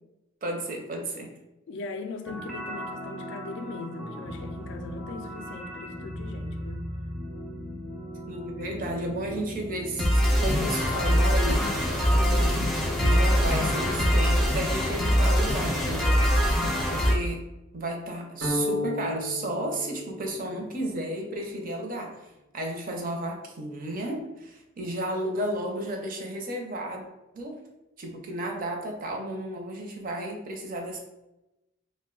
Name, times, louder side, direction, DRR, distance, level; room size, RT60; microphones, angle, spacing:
voice 1, 0.4-1.3 8.3-11.6 12.1-12.6 13.0-16.2 16.9-17.4 17.7-22.1 22.5-27.1 27.3-27.6 28.0-31.0, right 1 dB, 45° right, 0.5 m, -33 dB
voice 2, 1.7-6.9, left 3 dB, 65° left, 0.3 m, -39 dB
sound 1, 2.3-17.1, equal, ahead, 0.4 m, -26 dB
sound 2, 18.4-20.7, left 1 dB, 80° right, 1.0 m, -32 dB
2.6 x 2.1 x 3.7 m
head